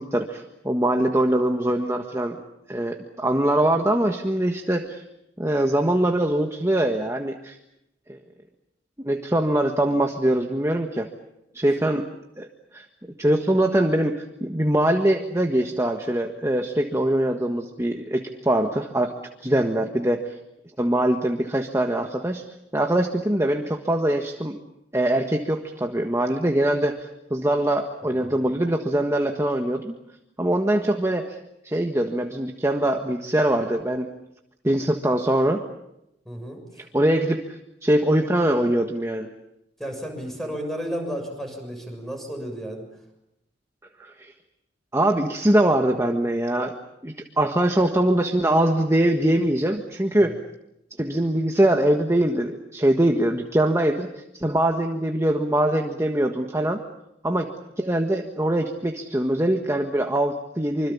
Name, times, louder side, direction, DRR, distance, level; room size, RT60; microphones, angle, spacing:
voice 1, 0.0-2.4 2.7-5.0 5.4-7.6 9.0-11.1 11.5-12.0 12.4-12.5 12.7-12.8 13.2-19.1 19.4-20.2 20.8-22.4 22.7-24.6 24.9-29.9 30.4-31.4 31.6-34.1 34.6-35.6 36.8-37.4 37.8-39.3 44.0-44.3 44.9-46.7 47.0-50.4 51.0-56.8 57.2-57.5 57.8-60.9, right 1 dB, 15° right, 4 dB, 1.5 m, -22 dB
voice 2, 28.0-28.5 36.2-36.6 39.8-42.8, equal, ahead, 4 dB, 6.8 m, -33 dB
25.5 x 25.5 x 7.2 m, 0.82 s
head